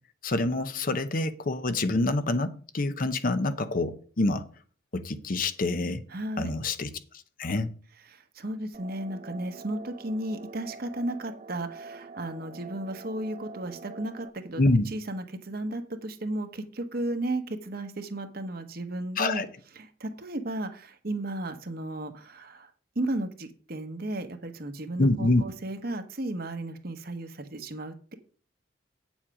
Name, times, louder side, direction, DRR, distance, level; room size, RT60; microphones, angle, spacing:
voice 1, 0.2-4.4 4.9-6.0 6.4-6.9 7.4-7.7 14.6-14.8 19.2-19.5 25.0-25.4, left 2 dB, 45° left, 0.7 m, -26 dB
voice 2, 6.1-6.5 8.1-14.6 14.9-19.4 19.8-22.7 22.9-28.1, right 1 dB, 55° right, 1.2 m, -34 dB
sound 1, 8.7-14.3, right 3 dB, 35° right, 0.4 m, -45 dB
8.8 x 7.3 x 4.9 m
head